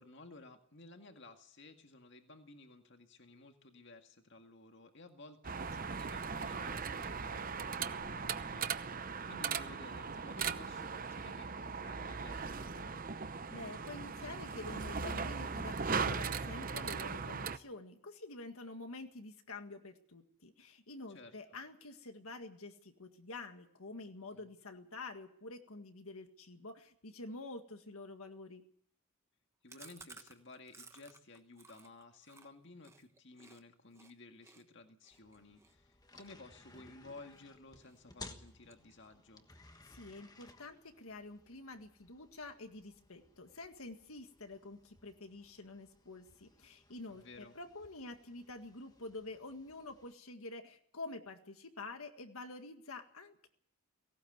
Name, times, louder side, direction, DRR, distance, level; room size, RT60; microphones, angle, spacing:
voice 1, 0.0-12.9 21.1-21.3 24.3-24.5 29.6-39.5 47.1-47.6, left 2 dB, 55° left, 5 dB, 2.0 m, -55 dB
sound 1, 5.4-17.6, right 5 dB, 40° right, 0.8 m, -39 dB
voice 2, 13.5-28.6 39.8-53.5, left 2 dB, 75° left, 6 dB, 1.8 m, -48 dB
Chewing mastication, 29.7-33.6 33.9-34.1 34.4-37.4 37.8-38.1 38.4-39.3 39.6-39.7 40.0-40.1 40.4-41.0, right 4 dB, 15° right, 1.3 m, -58 dB
sound 2, 35.1-50.1, left 3 dB, 15° left, 1.3 m, -59 dB
18.0 x 18.0 x 8.1 m, 0.65 s
head